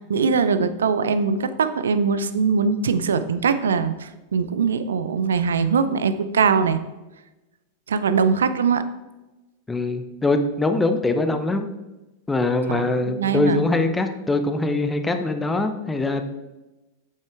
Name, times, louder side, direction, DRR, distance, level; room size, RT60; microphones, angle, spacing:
voice 1, 0.1-6.8 7.9-8.8 12.7-12.9 13.2-13.6, right 5 dB, 65° right, 12 dB, 0.5 m, -21 dB
voice 2, 9.7-11.6 12.3-16.2, left 2 dB, 10° left, 8 dB, 0.8 m, -23 dB
8.6 x 8.0 x 3.5 m, 1.1 s
figure-of-eight pair, 90°, 0 cm